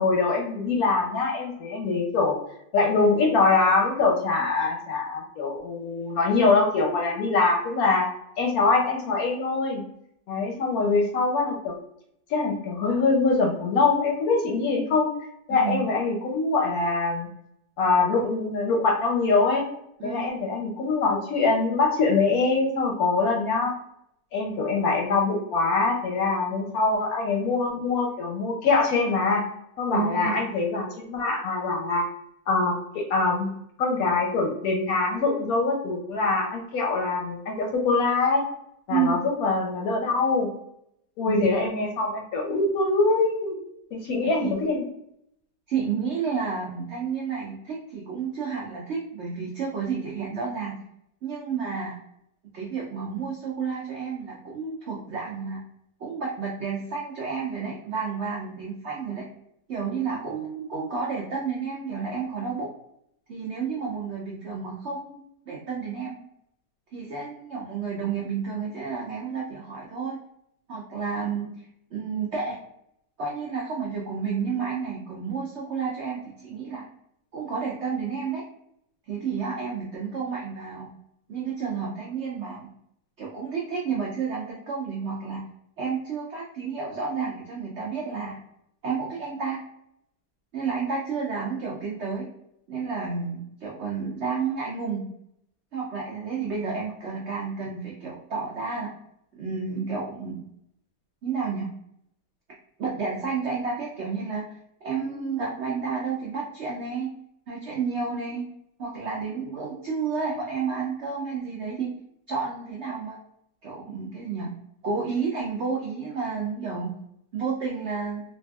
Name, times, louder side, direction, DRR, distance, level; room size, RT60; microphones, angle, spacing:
voice 1, 0.0-2.3 2.7-8.1 8.4-9.8 10.3-11.7 12.3-15.1 15.5-17.3 17.8-19.7 20.0-23.7 24.3-29.4 29.8-32.1 32.5-33.5 33.8-38.4 38.9-40.5 41.2-43.6 43.9-44.8, left 3 dB, 70° left, 1 dB, 0.9 m, -23 dB
voice 2, 29.9-30.4 38.9-39.2 41.3-41.5 44.2-44.5 45.7-50.8 51.2-52.0 52.5-55.6 56.0-59.3 59.7-62.7 63.3-65.2 65.5-66.1 66.9-70.2 70.7-72.6 73.2-76.9 77.3-78.4 79.1-80.9 81.3-82.7 83.2-85.4 85.8-88.4 88.8-89.6 90.5-92.3 92.7-95.0 95.7-98.9 99.3-100.4 101.2-101.7 102.8-107.1 107.5-108.5 108.8-111.9 112.3-113.2 113.6-114.5 114.8-116.9 117.3-118.2, right 5 dB, 85° right, -2 dB, 0.6 m, -31 dB
3.2 x 2.5 x 2.2 m, 0.75 s
omnidirectional pair, 1.9 m